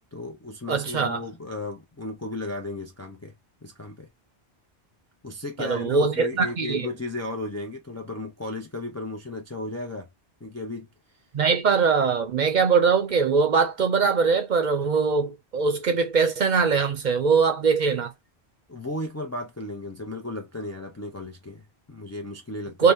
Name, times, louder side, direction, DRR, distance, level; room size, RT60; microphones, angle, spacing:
voice 1, 0.1-3.3 3.6-4.1 5.2-10.1 10.4-10.9 18.7-22.9, left 2 dB, 25° left, 0.3 m, -35 dB
voice 2, 0.7-1.2 5.6-6.9 11.3-18.1 22.8-22.9, right 5 dB, 55° right, 0.6 m, -22 dB
2.8 x 2.1 x 3.4 m
omnidirectional pair, 1.1 m